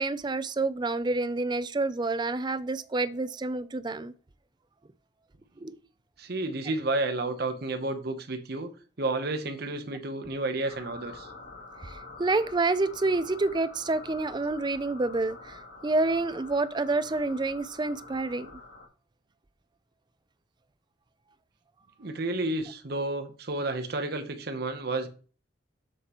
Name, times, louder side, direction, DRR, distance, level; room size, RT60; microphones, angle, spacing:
voice 1, 0.0-4.1 5.6-5.8 6.7-6.8 11.8-18.6, right 3 dB, 25° right, 0.4 m, -28 dB
voice 2, 6.2-8.7 9.0-11.3 22.0-25.1, right 2 dB, 60° right, 0.9 m, -31 dB
sound 1, 10.6-18.9, left 3 dB, 80° left, 2.9 m, -46 dB
7.3 x 6.7 x 3.0 m
head